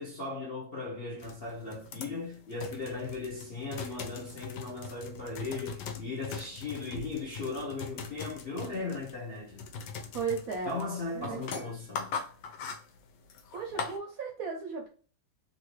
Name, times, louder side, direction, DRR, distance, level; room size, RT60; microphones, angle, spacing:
voice 1, 0.0-9.7 10.6-12.2, left 3 dB, 50° left, 0.7 m, -37 dB
sound 1, 1.2-14.0, left 5 dB, 75° left, 1.2 m, -42 dB
voice 2, 10.1-10.8 11.1-11.7 13.5-14.9, right 5 dB, 70° right, 0.9 m, -35 dB
3.0 x 2.6 x 3.0 m
omnidirectional pair, 2.0 m